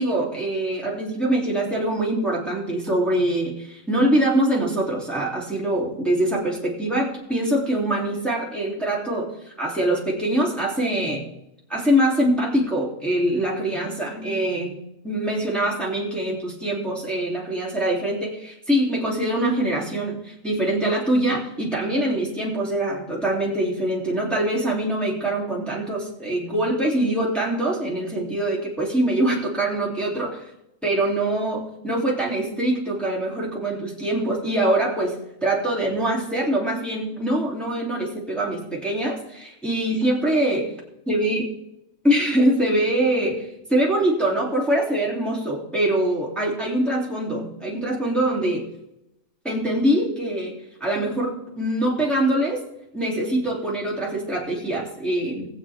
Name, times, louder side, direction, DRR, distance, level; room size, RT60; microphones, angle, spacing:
voice 1, 0.0-9.3 9.6-11.2 11.7-14.8 15.0-30.4 30.8-40.7 41.1-41.5 42.0-48.7 49.4-50.5 50.8-52.6 52.9-55.5, right 1 dB, ahead, -5 dB, 2.9 m, -23 dB
20.0 x 8.0 x 3.5 m, 0.86 s
omnidirectional pair, 1.4 m